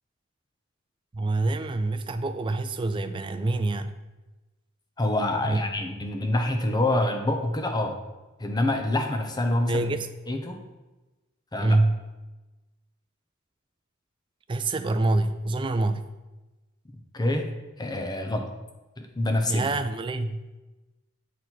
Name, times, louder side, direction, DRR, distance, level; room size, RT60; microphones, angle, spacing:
voice 1, 1.1-4.0 5.4-5.6 9.7-10.1 11.6-12.0 14.5-16.1 19.5-20.6, right 2 dB, 25° right, 9 dB, 0.3 m, -26 dB
voice 2, 5.0-8.0 8.4-9.9 10.3-10.6 11.5-11.8 17.1-17.5 17.8-18.5 19.0-19.7, left 1 dB, 20° left, 5 dB, 0.7 m, -26 dB
8.2 x 4.1 x 4.5 m, 1.1 s
head